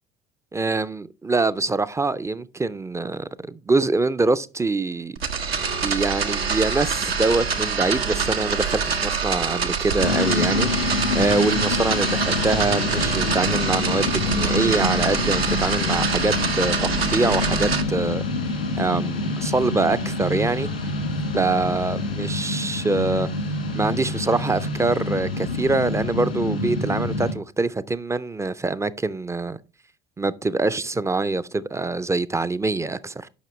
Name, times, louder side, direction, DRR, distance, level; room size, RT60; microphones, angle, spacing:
voice 1, 0.5-5.2 5.8-18.3 18.8-20.9 21.3-23.3 23.8-29.6 30.2-33.3, right 3 dB, 10° right, 0.4 m, -24 dB
sound 1, 5.2-17.8, right 5 dB, 85° right, 0.9 m, -25 dB
sound 2, 10.0-27.3, left 3 dB, 90° left, 2.0 m, -26 dB
10.0 x 5.8 x 3.0 m
figure-of-eight pair, 65°, 29 cm